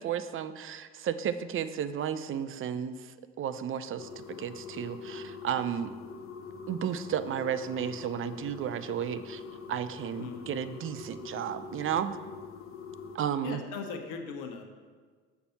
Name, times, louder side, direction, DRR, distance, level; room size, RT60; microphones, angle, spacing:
voice 1, 0.0-6.0 6.7-9.4 9.7-12.2 13.1-13.6, right 9 dB, 35° right, 12 dB, 0.5 m, -33 dB
sound 1, 4.0-13.2, left 5 dB, 40° left, 0.8 m, -44 dB
voice 2, 13.4-14.6, left 5 dB, 65° left, 5 dB, 1.1 m, -38 dB
6.8 x 4.5 x 5.7 m, 1.5 s
hypercardioid pair, 60°, 35 cm